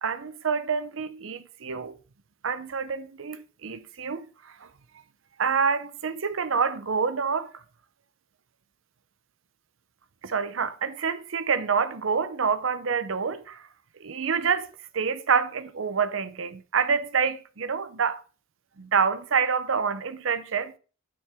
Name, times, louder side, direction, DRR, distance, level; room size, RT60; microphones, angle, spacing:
voice 1, 0.0-1.9 2.4-4.2 4.6-4.7 5.4-7.5 10.2-13.6 14.0-14.7 14.9-18.2 18.8-20.7, right 6 dB, 65° right, 0.7 m, -27 dB
6.7 x 5.9 x 3.5 m
head